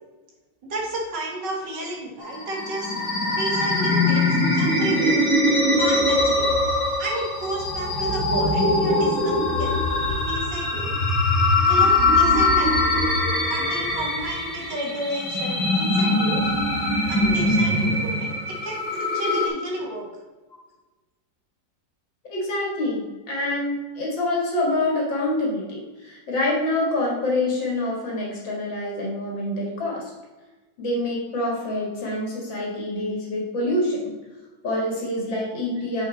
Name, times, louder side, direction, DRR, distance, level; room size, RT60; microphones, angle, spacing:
voice 1, 0.6-3.0 3.3-5.2 5.8-6.5 7.0-11.0 11.7-12.7 13.5-16.5 17.1-20.1, right 1 dB, 70° right, -2 dB, 2.4 m, -32 dB
sound 1, 2.2-19.5, left 2 dB, 55° left, 2.4 m, -22 dB
voice 2, 22.3-30.0 30.8-34.1 34.6-36.1, left 1 dB, 80° left, -3 dB, 2.6 m, -26 dB
6.6 x 6.1 x 4.1 m, 1.2 s
omnidirectional pair, 2.0 m